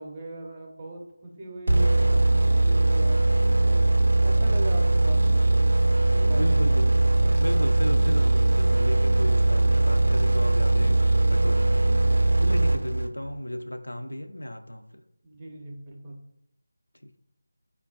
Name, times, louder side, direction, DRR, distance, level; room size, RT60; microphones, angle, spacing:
voice 1, 0.0-3.4 3.6-3.8 4.2-5.6 6.1-7.0 15.2-16.2, right 1 dB, 20° right, -1 dB, 0.5 m, -39 dB
sound 1, 1.7-13.3, right 2 dB, 80° right, 0.3 m, -21 dB
voice 2, 6.3-6.9 7.4-11.0 11.3-11.9 12.4-14.8, left 1 dB, 90° left, 7 dB, 0.3 m, -34 dB
3.9 x 2.2 x 2.2 m, 0.79 s
figure-of-eight pair, 165°, 0 cm